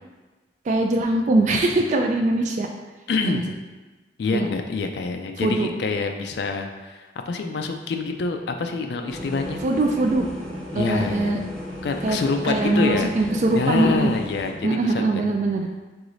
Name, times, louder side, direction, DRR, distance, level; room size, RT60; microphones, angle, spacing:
voice 1, 0.7-2.7 3.3-3.4 4.3-4.5 5.4-5.7 9.6-10.2 10.7-11.4 12.0-12.2 12.4-14.1 14.6-15.7, right 2 dB, 40° right, 2 dB, 0.3 m, -22 dB
voice 2, 3.1-3.5 4.2-9.6 10.7-11.5 11.8-13.1 13.5-15.3, left 4 dB, 65° left, 4 dB, 0.4 m, -26 dB
sound 1, 9.1-14.5, left 1 dB, 5° left, 0.8 m, -34 dB
4.8 x 3.9 x 2.6 m, 1.2 s
head